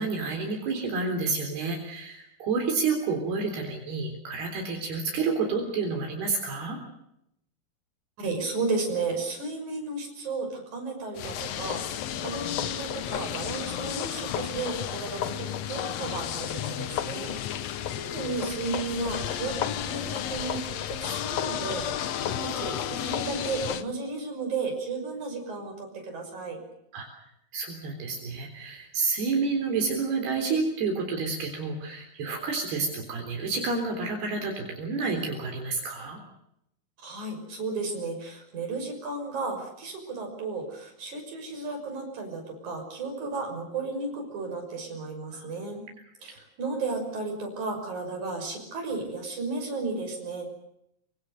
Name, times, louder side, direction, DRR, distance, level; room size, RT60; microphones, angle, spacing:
voice 1, 0.0-6.8 22.2-22.4 26.9-27.1 27.5-36.2 45.3-45.5, right 4 dB, 75° right, 3 dB, 5.6 m, -29 dB
voice 2, 8.2-26.6 37.0-45.8 46.2-50.5, right 3 dB, 45° right, 3 dB, 7.4 m, -34 dB
sound 1, 11.1-23.8, left 10 dB, 80° left, 1.4 m, -32 dB
25.5 x 25.0 x 6.7 m, 0.78 s
omnidirectional pair, 4.6 m